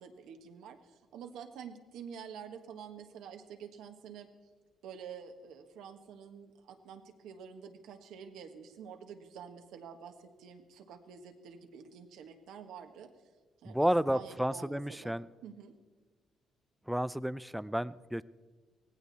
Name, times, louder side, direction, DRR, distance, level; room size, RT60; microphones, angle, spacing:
voice 1, 0.0-4.3 4.8-13.1 13.6-15.2 15.4-15.7, right 7 dB, 90° right, 5 dB, 1.5 m, -48 dB
voice 2, 13.7-15.3 16.9-18.2, equal, 5° right, 17 dB, 0.4 m, -31 dB
18.0 x 16.0 x 4.2 m, 1.4 s
cardioid pair, 90°, 0 cm